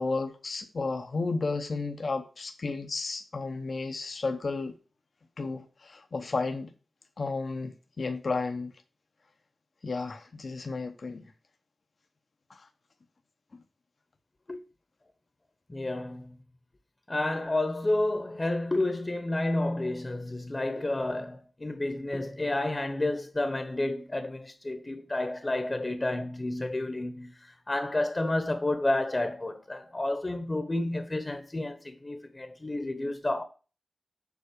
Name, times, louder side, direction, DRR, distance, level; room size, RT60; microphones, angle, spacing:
voice 1, 0.0-4.8 5.4-6.7 7.2-8.7 9.8-11.3 12.5-12.7, left 3 dB, 65° left, 0.9 m, -33 dB
voice 2, 15.7-16.4 17.1-33.4, left 2 dB, 35° left, 1.0 m, -30 dB
7.2 x 4.3 x 6.7 m
cardioid pair, 45°, 0 cm